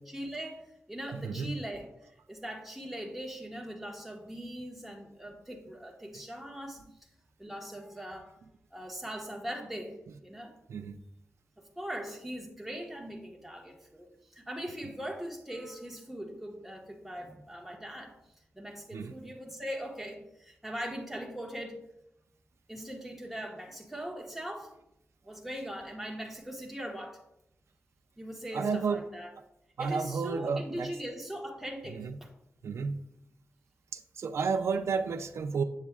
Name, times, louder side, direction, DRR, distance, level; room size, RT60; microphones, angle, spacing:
voice 1, 0.1-1.9 2.3-6.8 7.4-8.3 8.7-10.5 11.8-14.1 14.3-18.2 18.5-21.8 22.7-24.7 25.2-27.2 28.2-29.3 29.8-32.3, equal, 5° right, 0 dB, 1.2 m, -40 dB
voice 2, 1.1-1.6 10.7-11.0 18.9-19.1 28.5-29.0 29.8-30.9 31.9-32.1 32.6-33.0 33.9-35.6, right 5 dB, 75° right, 8 dB, 0.4 m, -31 dB
7.2 x 7.2 x 2.3 m, 0.81 s
wide cardioid pair, 100°, 5 cm